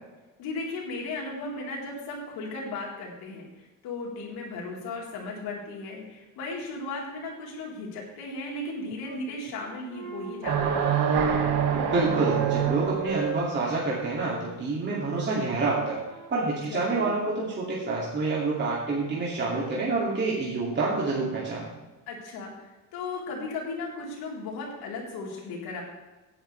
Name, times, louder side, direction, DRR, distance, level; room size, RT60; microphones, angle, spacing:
voice 1, 0.4-10.9 16.7-17.1 22.1-25.8, left 3 dB, 85° left, -2 dB, 4.3 m, -36 dB
Wind instrument woodwind instrument, 8.4-9.2 9.6-12.6 13.0-14.5 15.0-17.5, right 7 dB, 45° right, 5.0 m, -40 dB
sound 1, 10.4-13.3, right 7 dB, 80° right, 2.2 m, -25 dB
voice 2, 11.7-16.0 16.3-21.7, right 3 dB, 30° right, -5 dB, 2.8 m, -27 dB
16.5 x 10.0 x 3.5 m, 1.2 s
cardioid pair, 145°, 36 cm